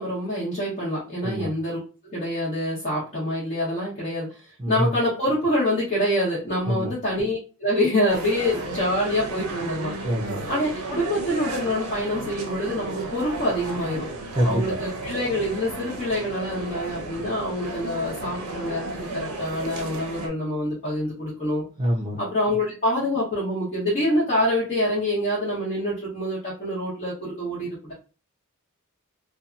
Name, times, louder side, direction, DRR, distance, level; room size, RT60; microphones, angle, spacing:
voice 1, 0.0-9.9 10.5-14.1 14.4-18.8 19.1-21.6 22.2-27.9, left 1 dB, 40° left, -8 dB, 1.0 m, -26 dB
voice 2, 4.6-4.9 6.7-6.9 10.0-10.4 14.4-14.6 21.8-22.2, equal, 25° right, -3 dB, 0.6 m, -24 dB
sound 1, 8.1-20.3, right 2 dB, 80° right, 0.7 m, -34 dB
2.7 x 2.3 x 2.5 m, 0.35 s
head